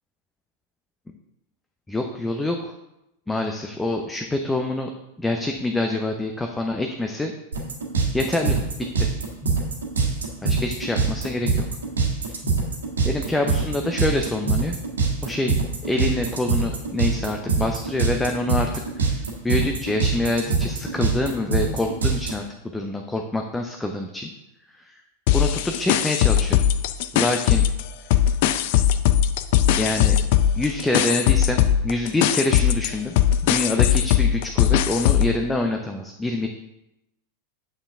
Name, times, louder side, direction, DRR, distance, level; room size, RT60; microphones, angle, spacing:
voice 1, 1.9-2.7 3.3-4.9 5.2-7.3 8.1-9.1 10.4-11.6 13.0-14.8 15.2-15.6 15.8-22.5 22.7-24.3 24.7-25.0 25.3-26.6 27.1-27.7 29.8-30.2 30.6-33.2 33.4-36.5, left 2 dB, 10° left, 3 dB, 0.7 m, -26 dB
sound 1, 7.5-22.3, right 4 dB, 70° right, 1.6 m, -23 dB
sound 2, 25.3-27.8 28.1-35.4, left 10 dB, 50° left, 0.4 m, -19 dB
8.9 x 7.1 x 3.5 m, 0.89 s
figure-of-eight pair, 90°, 0 cm